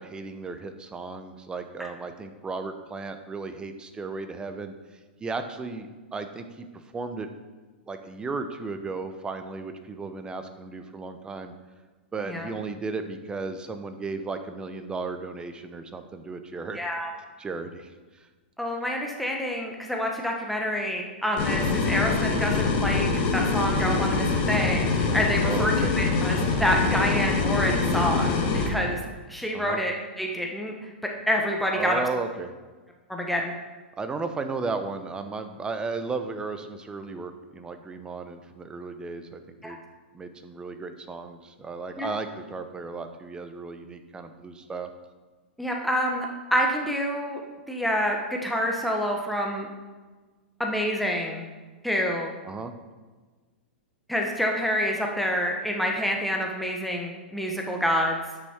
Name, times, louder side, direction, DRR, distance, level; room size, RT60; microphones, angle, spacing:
voice 1, 0.0-4.7 5.2-6.7 6.9-7.3 7.9-11.5 12.1-16.8 17.4-17.9 25.4-25.9 29.5-29.8 31.7-32.5 34.0-39.8 40.1-44.9 52.4-52.7, right 4 dB, 15° right, 8 dB, 0.8 m, -35 dB
voice 2, 12.2-12.5 16.7-17.1 18.6-28.3 28.7-29.0 29.3-30.7 31.3-32.0 33.1-33.5 39.6-39.8 42.0-42.1 45.6-47.4 47.7-49.7 50.6-51.5 51.8-52.3 54.1-58.2, equal, ahead, 0 dB, 1.2 m, -27 dB
sound 1, 21.4-28.7, left 4 dB, 45° left, 1.9 m, -24 dB
9.8 x 6.3 x 4.5 m, 1.3 s
hypercardioid pair, 110°, 6 cm